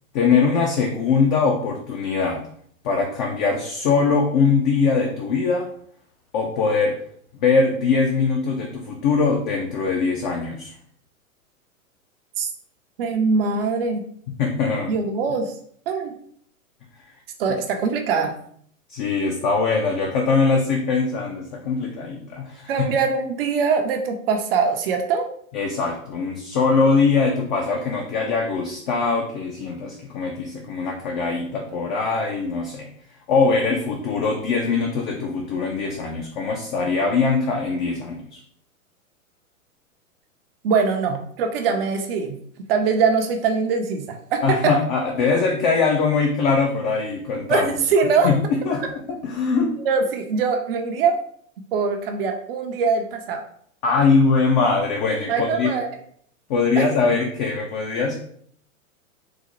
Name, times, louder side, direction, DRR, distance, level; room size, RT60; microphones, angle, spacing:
voice 1, 0.1-2.4 2.8-5.7 6.3-7.0 7.4-10.7 14.4-14.9 18.9-22.9 25.5-32.9 33.3-38.4 44.4-47.8 48.2-48.4 48.6-49.8 53.8-55.8 56.5-58.2, left 4 dB, 35° left, 0 dB, 0.4 m, -22 dB
voice 2, 13.0-14.0 14.9-15.5 15.9-16.1 17.4-18.3 22.7-25.3 40.6-42.4 42.7-44.7 47.5-48.3 49.9-51.2 51.7-53.4 55.3-55.9 56.8-56.9, right 5 dB, 45° right, 4 dB, 0.5 m, -22 dB
3.8 x 2.0 x 3.0 m, 0.62 s
hypercardioid pair, 110°, 42 cm